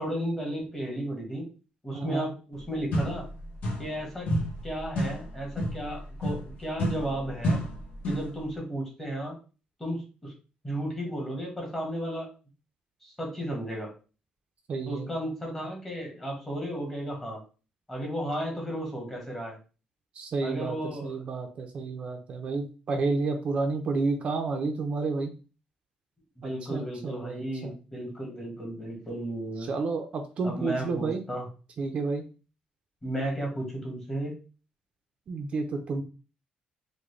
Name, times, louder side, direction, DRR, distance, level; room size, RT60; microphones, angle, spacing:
voice 1, 0.0-1.5 1.8-3.3 3.8-4.3 4.6-7.6 8.0-9.4 9.8-10.3 10.6-12.3 13.0-13.9 14.9-17.4 17.9-19.6 20.4-21.2 26.4-29.7 30.4-31.5 33.0-34.4, right 1 dB, 15° left, -1 dB, 1.3 m, -34 dB
voice 2, 1.9-2.3 14.7-15.1 20.2-20.8 21.0-25.3 26.4-27.7 29.7-31.2 31.8-32.3 35.3-36.0, right 3 dB, 45° right, 4 dB, 0.5 m, -30 dB
sound 1, 2.5-2.6 2.9-4.0 4.3-8.4, equal, 75° left, 0.9 m, -31 dB
3.7 x 2.2 x 3.2 m, 0.34 s
cardioid pair, 135°, 3 cm